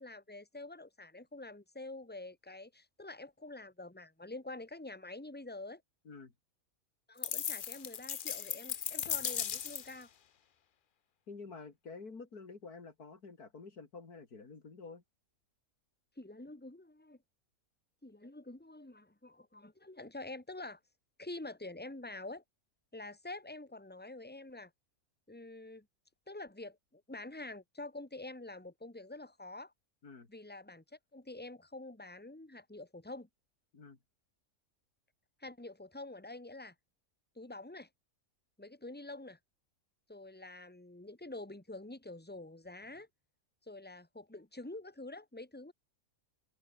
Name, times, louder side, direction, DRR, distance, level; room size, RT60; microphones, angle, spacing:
voice 1, 0.0-5.8 7.1-10.1 16.2-17.2 18.0-20.8 21.2-22.4 22.9-24.7 25.3-25.9 26.3-29.7 30.3-33.3 35.4-36.7 37.4-37.9 38.6-39.4 40.1-43.1 43.6-45.7, left 2 dB, 5° left, 2.5 m, -47 dB
sound 1, 7.2-10.0, left 8 dB, 50° left, 0.6 m, -37 dB
voice 2, 11.3-15.0 30.0-30.3 33.7-34.0, left 4 dB, 85° left, 3.5 m, -49 dB
omnidirectional pair, 1.6 m